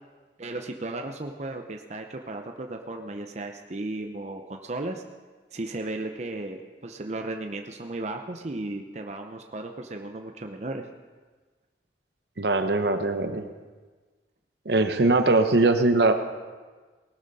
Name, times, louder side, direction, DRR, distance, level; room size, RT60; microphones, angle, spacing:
voice 1, 0.4-5.0 5.5-10.9, right 2 dB, 40° right, 4 dB, 0.7 m, -35 dB
voice 2, 12.4-13.5 14.7-16.1, right 2 dB, 65° right, 8 dB, 1.0 m, -21 dB
19.0 x 12.0 x 4.1 m, 1.4 s
head